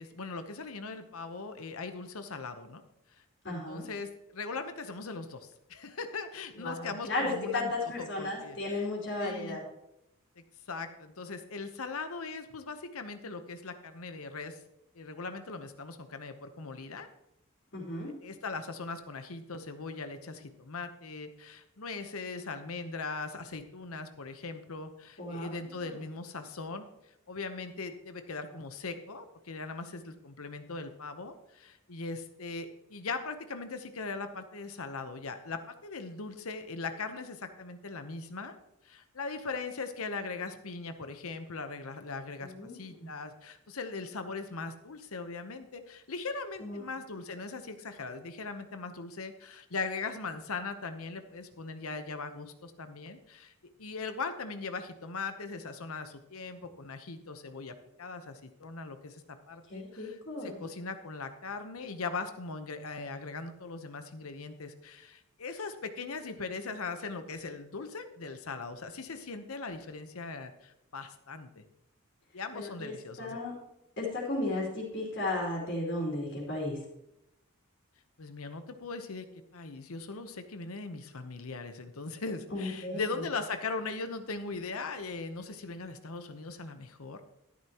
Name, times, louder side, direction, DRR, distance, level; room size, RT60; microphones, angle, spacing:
voice 1, 0.0-2.8 3.5-7.7 8.0-8.9 9.2-9.6 10.4-14.6 14.9-17.1 18.2-26.9 27.3-38.5 38.8-53.5 53.8-59.2 59.5-71.6 72.3-73.4 78.2-79.3 79.5-87.2, left 4 dB, 75° left, 8 dB, 0.9 m, -40 dB
voice 2, 3.4-3.9 6.5-9.6 17.7-18.1 25.2-25.5 25.8-26.1 42.4-43.1 46.6-46.9 59.7-60.7 72.5-73.5 74.0-76.8 82.5-83.0, left 2 dB, 55° left, -5 dB, 3.2 m, -35 dB
12.5 x 10.5 x 3.0 m, 0.86 s
head